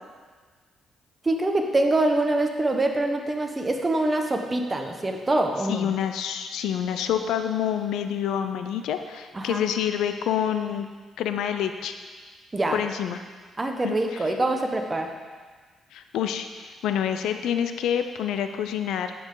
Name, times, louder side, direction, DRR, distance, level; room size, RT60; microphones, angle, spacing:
voice 1, 1.2-5.9 9.3-9.7 12.5-12.8 13.6-15.1, right 2 dB, 25° right, 3 dB, 1.1 m, -25 dB
voice 2, 5.7-10.9 11.2-12.0 12.7-13.2 13.8-14.0 15.9-19.1, left 9 dB, 85° left, 8 dB, 0.6 m, -27 dB
9.9 x 8.7 x 3.9 m, 1.5 s
cardioid pair, 90°, 0 cm